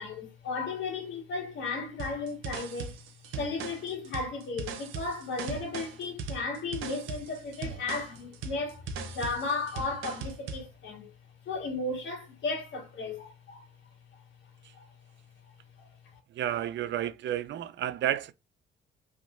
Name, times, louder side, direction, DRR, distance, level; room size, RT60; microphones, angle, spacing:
voice 1, 0.0-2.9 3.4-11.1 11.5-13.7 14.7-14.9 15.8-15.9, left 3 dB, 70° left, 2.1 m, -35 dB
sound 1, 2.0-10.7, right 5 dB, 90° right, 0.8 m, -39 dB
voice 2, 16.3-18.3, right 11 dB, 65° right, 0.5 m, -31 dB
3.6 x 3.1 x 2.5 m
cardioid pair, 90°, 20 cm